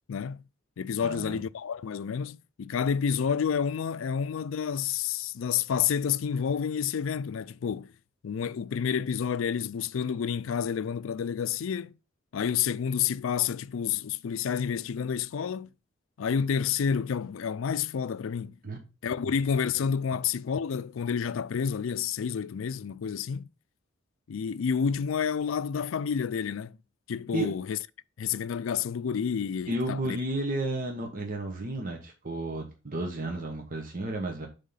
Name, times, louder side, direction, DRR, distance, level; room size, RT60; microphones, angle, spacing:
voice 1, 0.1-0.4 0.8-7.9 8.2-11.9 12.3-15.7 16.2-18.6 19.0-23.5 24.3-26.7 27.1-27.8 28.2-30.2, left 7 dB, 75° left, 0.4 m, -29 dB
voice 2, 1.0-1.4 18.6-18.8 27.3-27.5 29.7-34.5, right 2 dB, 45° right, 1.1 m, -32 dB
7.5 x 3.7 x 5.5 m
head